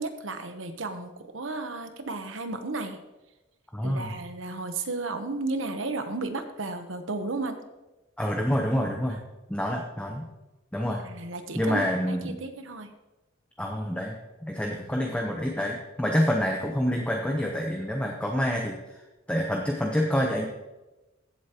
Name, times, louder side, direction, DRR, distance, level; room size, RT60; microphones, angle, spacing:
voice 1, 0.0-3.0 3.8-7.6 11.0-11.8 12.1-12.9, right 3 dB, 70° right, 8 dB, 1.0 m, -33 dB
voice 2, 3.7-4.1 8.2-9.2 9.5-10.3 10.7-11.0 11.5-12.4 13.6-14.1 14.4-19.0 19.3-20.5, equal, 5° left, 0 dB, 0.9 m, -27 dB
15.0 x 8.2 x 3.0 m, 1.1 s
head